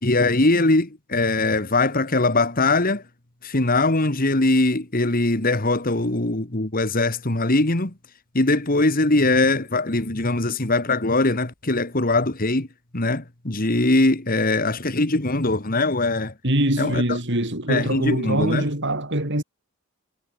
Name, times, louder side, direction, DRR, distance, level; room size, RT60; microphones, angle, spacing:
voice 1, 0.0-3.0 3.4-7.9 8.3-12.7 12.9-16.3 16.8-17.2 17.7-18.7, left 2 dB, 40° left, 2.0 m, -21 dB
voice 2, 16.4-19.4, right 1 dB, 55° right, 5.6 m, -23 dB
head